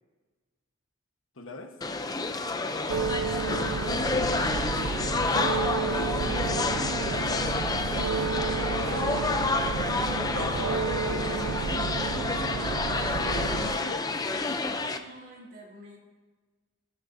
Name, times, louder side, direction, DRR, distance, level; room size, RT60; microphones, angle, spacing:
voice 1, 1.3-1.7 5.8-6.4 6.8-7.7 8.8-9.3 10.2-10.6 10.9-11.7 13.2-14.1, left 2 dB, 70° left, 4 dB, 1.2 m, -40 dB
sound 1, 1.8-15.0, left 3 dB, 20° left, 0.5 m, -29 dB
sound 2, 2.9-13.8, right 4 dB, 70° right, 0.5 m, -31 dB
voice 2, 3.0-6.2 10.5-10.8 11.3-11.6 12.5-13.5 14.9-16.0, right 1 dB, 50° right, -3 dB, 3.7 m, -47 dB
22.0 x 9.7 x 2.7 m, 1.3 s
head